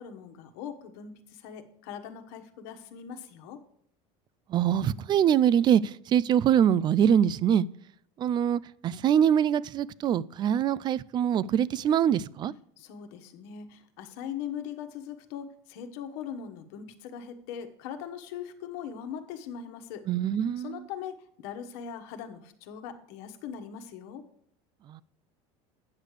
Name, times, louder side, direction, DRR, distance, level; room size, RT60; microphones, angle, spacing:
voice 1, 0.0-3.6 12.8-20.0 20.6-24.2, left 8 dB, 70° left, 1.4 m, -40 dB
voice 2, 4.5-5.8 6.1-7.7 8.2-12.5 20.1-20.8 24.9-25.0, right 9 dB, 30° right, 0.4 m, -24 dB
9.5 x 6.5 x 4.8 m
supercardioid pair, 130°, 14 cm